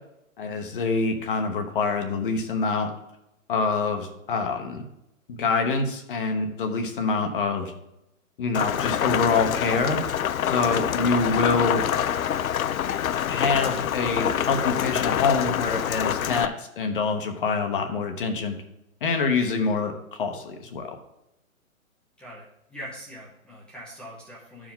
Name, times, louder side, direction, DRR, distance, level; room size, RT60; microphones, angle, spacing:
voice 1, 0.4-2.9 3.5-4.8 5.3-7.7 8.4-10.0 10.5-11.8 13.3-18.6 19.0-20.9, left 4 dB, 40° left, 5 dB, 0.9 m, -26 dB
Rain, 8.5-16.5, left 10 dB, 75° left, 0.5 m, -26 dB
voice 2, 22.2-24.7, equal, ahead, -6 dB, 0.7 m, -42 dB
12.0 x 4.9 x 3.7 m, 0.87 s
hypercardioid pair, 145°, 43 cm